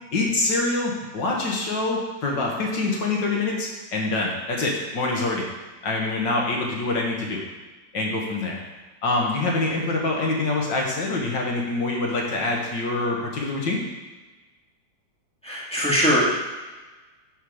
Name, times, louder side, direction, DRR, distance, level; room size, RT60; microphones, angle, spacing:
voice 1, 0.1-5.4 5.8-7.4 7.9-8.6 9.0-13.8, left 2 dB, 65° left, -1 dB, 2.1 m, -25 dB
voice 2, 15.4-16.3, equal, 5° left, -7 dB, 2.0 m, -21 dB
9.6 x 4.5 x 4.9 m, 1.2 s
omnidirectional pair, 2.1 m